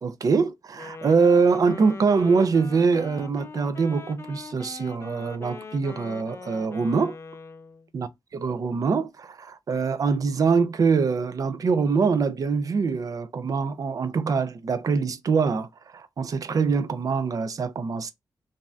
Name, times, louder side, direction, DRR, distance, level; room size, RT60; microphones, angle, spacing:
voice 1, 0.0-7.2 7.9-8.1 8.3-18.1, right 5 dB, 45° right, 0.3 m, -24 dB
Wind instrument woodwind instrument, 0.7-7.9, left 4 dB, 35° left, 0.4 m, -42 dB
2.6 x 2.3 x 3.0 m
wide cardioid pair, 175°, 8 cm